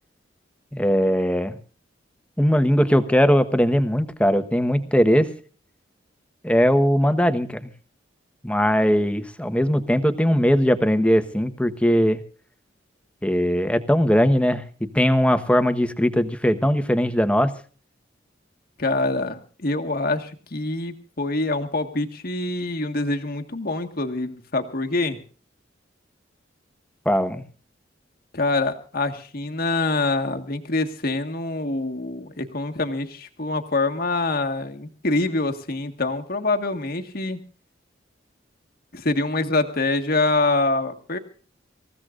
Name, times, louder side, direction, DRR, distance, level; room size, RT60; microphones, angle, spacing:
voice 1, 0.7-1.6 2.4-5.3 6.4-7.7 8.4-12.2 13.2-17.5 27.0-27.4, equal, 5° left, 9 dB, 1.2 m, -20 dB
voice 2, 18.8-25.2 28.3-37.4 38.9-41.2, left 2 dB, 55° left, 6 dB, 1.6 m, -25 dB
26.5 x 15.5 x 2.5 m, 0.40 s
head